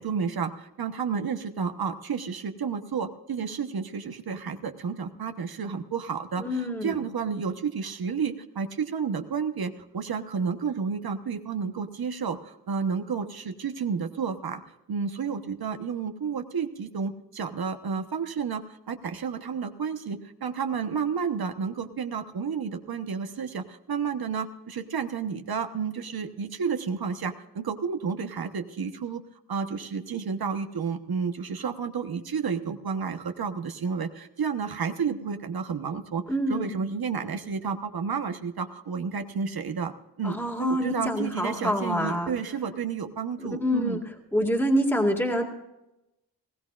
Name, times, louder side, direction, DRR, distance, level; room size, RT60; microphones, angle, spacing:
voice 1, 0.0-14.6 14.9-29.2 29.5-39.9 40.2-44.0, right 6 dB, 70° right, 6 dB, 1.2 m, -31 dB
voice 2, 6.4-7.0 36.3-36.7 40.2-42.3 43.4-44.0 44.3-45.4, equal, 5° left, 1 dB, 2.1 m, -26 dB
20.5 x 16.0 x 2.5 m, 0.93 s
wide cardioid pair, 95°, 39 cm